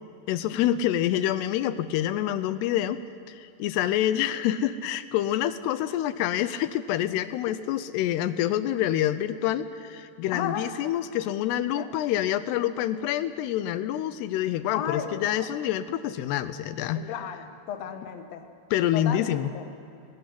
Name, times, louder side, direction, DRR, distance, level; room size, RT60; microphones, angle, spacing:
voice 1, 0.3-3.0 3.3-17.1 18.7-19.5, left 12 dB, 80° left, 13 dB, 2.7 m, -27 dB
voice 2, 10.3-10.6 11.7-11.9 14.7-15.5 16.9-18.5 18.9-19.7, left 8 dB, 60° left, 6 dB, 1.8 m, -34 dB
18.5 x 18.0 x 9.8 m, 2.7 s
omnidirectional pair, 4.9 m